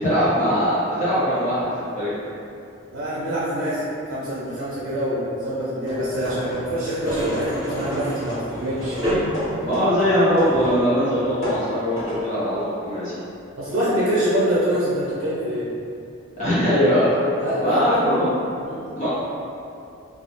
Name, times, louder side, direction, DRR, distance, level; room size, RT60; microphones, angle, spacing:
voice 1, 0.0-1.7 2.0-2.1 9.6-13.1 16.4-17.1 17.6-18.3 19.0-19.1, equal, 35° left, -12 dB, 0.6 m, -21 dB
voice 2, 2.9-3.8 4.1-9.0 13.6-15.7 17.4-18.1 18.6-18.9, equal, 70° right, -8 dB, 0.5 m, -25 dB
sound 1, 5.8-6.8 7.1-10.8 11.1-12.3, equal, 80° left, 0.9 m, -33 dB
sound 2, 6.7-9.8 10.4-10.8 11.5-11.7, equal, 20° right, 0.6 m, -28 dB
2.2 x 2.0 x 2.8 m, 2.6 s
head